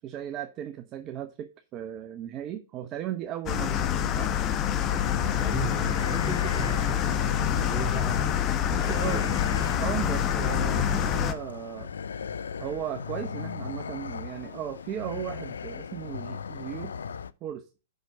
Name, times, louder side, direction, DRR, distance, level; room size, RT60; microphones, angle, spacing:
voice 1, 0.0-4.3 8.6-9.3 9.8-11.9 12.6-16.9 17.4-17.6, right 11 dB, 35° right, 0.8 m, -36 dB
sound 1, 3.5-11.3, left 9 dB, 35° left, 1.1 m, -26 dB
sound 2, 4.9-17.3, left 6 dB, 75° left, 0.5 m, -36 dB
voice 2, 5.1-9.3, right 2 dB, 15° right, 3.0 m, -38 dB
7.0 x 6.0 x 6.6 m
hypercardioid pair, 105°, 0 cm